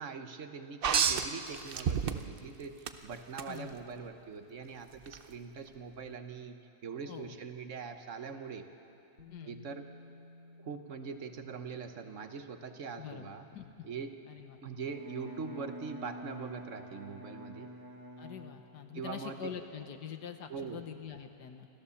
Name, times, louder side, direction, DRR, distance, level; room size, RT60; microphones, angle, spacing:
voice 1, 0.0-6.6 6.8-8.6 9.4-9.8 10.6-13.5 13.8-14.2 14.6-17.7 18.9-19.4 20.5-20.8, right 5 dB, 50° right, 7 dB, 1.2 m, -42 dB
sound 1, 0.8-2.4 2.9-3.5 5.1-5.2, right 7 dB, 75° right, 0.5 m, -29 dB
Bass guitar, 9.2-13.1 14.3-14.4, left 2 dB, 35° left, 1.9 m, -56 dB
voice 2, 13.0-13.9 14.3-14.6 18.2-21.7, left 8 dB, 70° left, 6 dB, 1.6 m, -45 dB
Bowed string instrument, 14.8-19.1, equal, 15° right, 1.0 m, -48 dB
28.0 x 13.5 x 7.1 m, 2.7 s
omnidirectional pair, 1.9 m